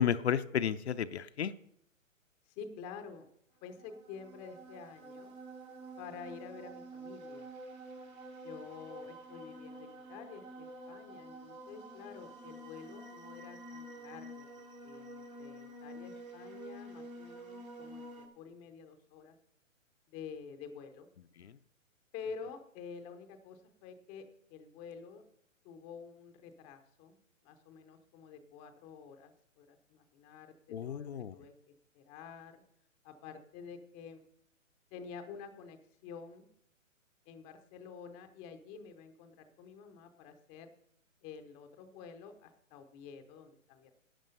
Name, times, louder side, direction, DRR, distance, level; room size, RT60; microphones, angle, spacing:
voice 1, 0.0-1.5 21.4-21.5 30.7-31.3, left 8 dB, 55° left, 10 dB, 0.6 m, -32 dB
voice 2, 2.6-3.3 3.6-5.3 6.0-7.5 8.4-14.5 14.8-19.3 20.1-21.1 22.1-25.2 25.6-27.2 27.4-32.6 33.0-34.2 34.9-36.5 37.3-40.7 41.2-44.0, left 6 dB, 15° left, 8 dB, 0.6 m, -49 dB
sound 1, 3.7-18.3, right 1 dB, 85° right, 3.6 m, -49 dB
11.5 x 8.7 x 5.3 m, 0.71 s
figure-of-eight pair, 130°, 40 cm